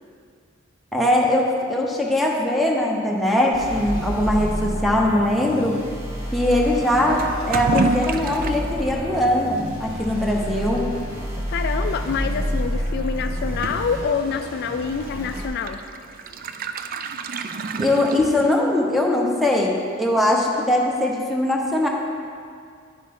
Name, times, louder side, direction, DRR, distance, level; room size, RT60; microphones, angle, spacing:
voice 1, 0.9-5.7 6.3-10.9 17.8-21.9, left 1 dB, ahead, -2 dB, 0.9 m, -21 dB
sound 1, 3.5-15.4, equal, 85° right, 2.2 m, -29 dB
Toilet flush / Liquid, 7.2-18.8, right 3 dB, 45° right, 0.3 m, -31 dB
voice 2, 11.5-15.8, left 6 dB, 55° left, 7 dB, 0.3 m, -26 dB
9.5 x 6.4 x 3.7 m, 2.2 s
head